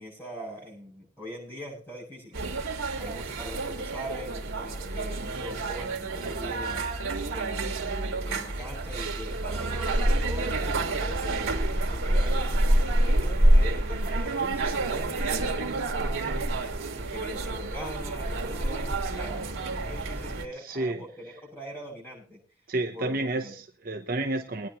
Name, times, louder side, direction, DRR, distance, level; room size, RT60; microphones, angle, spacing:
voice 1, 0.0-2.5 3.0-6.8 7.3-7.9 8.2-11.5 11.8-15.8 16.1-16.4 17.1-19.5 19.7-22.4 22.9-23.5, equal, 10° left, -5 dB, 7.6 m, -42 dB
sound 1, 2.3-20.4, right 1 dB, 85° right, 2.2 m, -27 dB
voice 2, 20.6-21.0 22.7-24.7, right 2 dB, 45° right, 5 dB, 0.9 m, -30 dB
23.0 x 9.9 x 3.1 m, 0.36 s
head